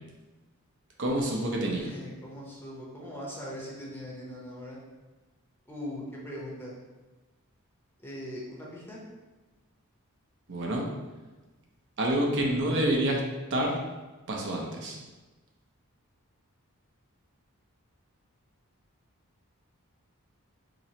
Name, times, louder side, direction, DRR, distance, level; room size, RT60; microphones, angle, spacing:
voice 1, 1.0-1.9 10.5-10.8 12.0-13.2 13.5-13.8 14.3-15.0, right 1 dB, 55° right, -1 dB, 0.6 m, -27 dB
voice 2, 1.6-4.8 5.7-6.7 8.0-9.0, equal, 10° left, -4 dB, 0.7 m, -40 dB
4.1 x 3.0 x 2.8 m, 1.2 s
head